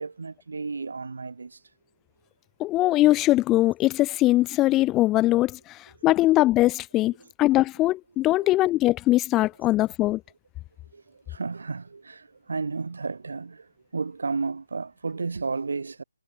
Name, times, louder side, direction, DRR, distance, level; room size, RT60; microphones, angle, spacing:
voice 1, 0.0-1.6 7.2-7.3 8.4-8.6 10.9-16.0, right 4 dB, 65° right, 3.5 m, -33 dB
voice 2, 2.6-7.1 7.4-10.2, left 16 dB, 15° left, 0.7 m, -21 dB
figure-of-eight pair, 145°, 0 cm